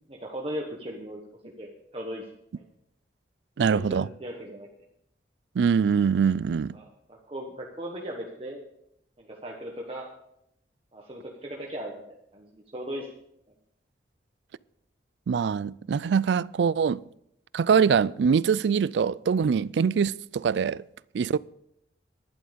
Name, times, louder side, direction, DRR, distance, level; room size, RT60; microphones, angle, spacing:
voice 1, 0.1-1.2 1.6-2.2 2.5-2.6 3.6-4.7 6.7-8.6 9.2-10.1 10.9-13.1, equal, 30° right, 1.3 m, -38 dB
voice 2, 3.6-4.1 5.6-6.8 15.3-17.0 17.5-20.8 21.1-21.4, right 6 dB, 75° right, 0.3 m, -23 dB
11.5 x 11.0 x 5.1 m
head